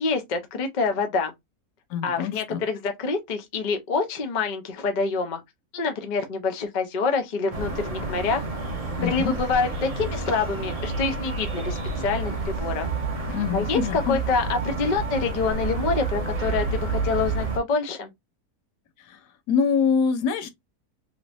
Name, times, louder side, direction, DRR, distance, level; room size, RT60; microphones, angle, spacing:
voice 1, 0.0-1.3 2.0-5.4 5.7-8.4 9.0-12.9 13.5-18.1, left 4 dB, 45° left, 0.6 m, -26 dB
voice 2, 1.9-2.6 9.0-9.3 13.3-14.2 19.0-19.2 19.5-20.5, left 6 dB, 85° left, 1.3 m, -25 dB
sound 1, 7.5-17.6, right 3 dB, 60° right, 0.4 m, -29 dB
3.3 x 3.0 x 2.5 m
omnidirectional pair, 1.7 m